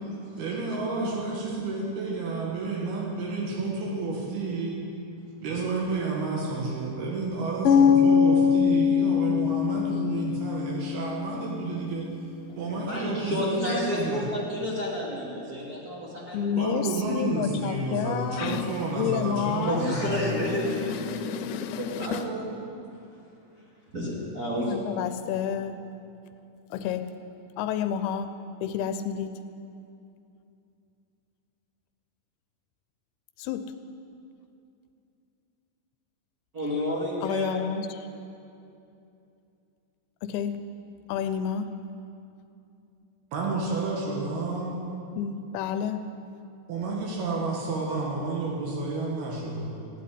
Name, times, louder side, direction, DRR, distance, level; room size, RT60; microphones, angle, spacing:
voice 1, 0.4-4.8 5.4-12.1 12.6-14.3 16.6-20.5 22.0-22.6 43.3-44.8 46.7-49.7, right 3 dB, 80° right, -3 dB, 3.7 m, -30 dB
sound 1, 7.7-11.6, left 7 dB, 70° left, 2.5 m, -22 dB
voice 2, 12.8-16.9 19.6-21.9 23.9-24.7 36.5-37.5, left 1 dB, 30° right, -5 dB, 2.4 m, -31 dB
voice 3, 16.3-20.0 20.4-22.3 24.7-25.8 26.7-27.1 27.6-28.3 28.6-29.3 33.4-33.7 37.2-38.1 40.2-40.6 41.1-41.7 45.2-46.0, left 8 dB, 90° left, 9 dB, 2.6 m, -30 dB
15.0 x 8.4 x 10.0 m, 2.7 s
omnidirectional pair, 4.4 m